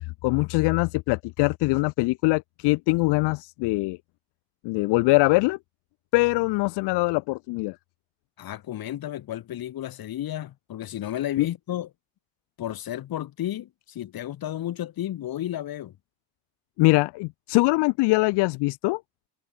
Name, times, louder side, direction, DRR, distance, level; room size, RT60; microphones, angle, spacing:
voice 1, 0.2-4.0 4.6-5.6 6.1-7.8 11.4-11.5 16.8-19.0, left 24 dB, 75° left, 0.7 m, -22 dB
voice 2, 8.4-11.9 12.6-15.9, left 12 dB, 60° left, 3.3 m, -32 dB
cardioid pair, 95°, 41 cm